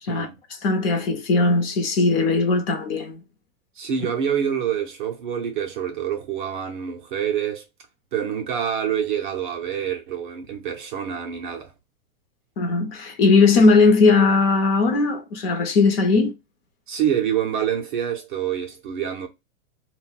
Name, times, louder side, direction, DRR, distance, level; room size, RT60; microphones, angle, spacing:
voice 1, 0.6-3.2 12.6-16.3, left 3 dB, 45° left, 0.6 m, -18 dB
voice 2, 3.8-7.6 8.1-11.7 16.9-19.3, right 8 dB, 35° right, 0.4 m, -26 dB
2.2 x 2.1 x 3.8 m
hypercardioid pair, 155°, 43 cm